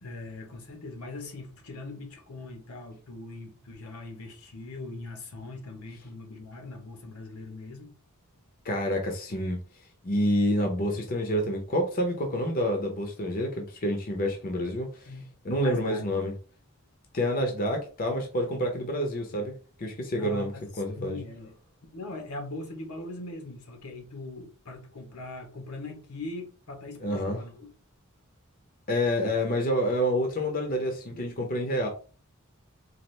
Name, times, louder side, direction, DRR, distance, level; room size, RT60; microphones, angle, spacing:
voice 1, 0.0-7.9 15.1-15.3 15.6-16.0 20.2-21.5 21.9-27.7, left 2 dB, 80° left, 1.1 m, -41 dB
voice 2, 8.6-9.6 10.0-15.1 15.4-16.3 17.1-20.5 20.8-21.2 27.0-27.4 28.9-31.9, equal, 40° left, 0.7 m, -28 dB
4.1 x 2.5 x 3.2 m
head